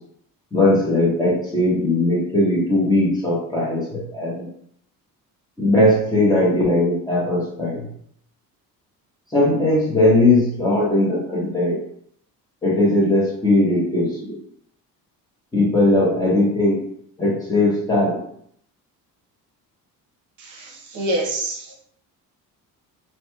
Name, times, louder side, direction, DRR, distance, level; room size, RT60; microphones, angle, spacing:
voice 1, 0.5-4.5 5.6-7.9 9.3-11.8 12.6-14.4 15.5-16.8 17.2-18.2, left 1 dB, 10° left, -7 dB, 0.8 m, -19 dB
voice 2, 20.4-21.8, right 1 dB, 55° right, -1 dB, 0.7 m, -27 dB
2.9 x 2.7 x 2.2 m, 0.67 s
cardioid pair, 170°, 36 cm